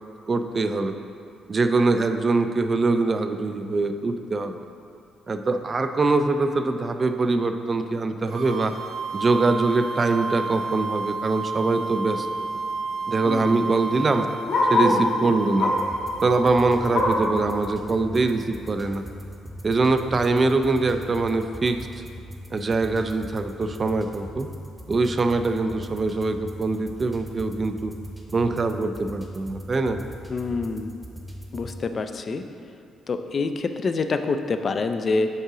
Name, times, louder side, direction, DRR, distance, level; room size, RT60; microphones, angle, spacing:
voice 1, 0.3-0.9 1.5-4.6 5.3-8.7 9.1-12.3 13.1-14.3 14.7-15.7 16.2-19.0 19.6-21.9 22.5-24.5 24.9-27.9 28.3-30.0, right 3 dB, 35° right, 7 dB, 0.3 m, -23 dB
sound 1, 8.3-16.9, right 3 dB, 75° right, 0.9 m, -31 dB
Bark, 11.5-11.6 11.9-12.0 12.2-15.1 15.5-16.0 16.3-17.3 17.8-17.9 18.3-18.4 19.1-19.2, left 2 dB, 75° left, 1.2 m, -25 dB
voice 2, 13.2-13.7 14.4-14.5 14.8-15.3 30.3-30.9 31.5-32.4 33.1-35.3, left 4 dB, 45° left, 7 dB, 0.3 m, -27 dB
sound 2, 15.7-31.8, equal, 15° right, 0.8 m, -40 dB
5.4 x 3.7 x 4.8 m, 2.5 s
cardioid pair, 90°, 0 cm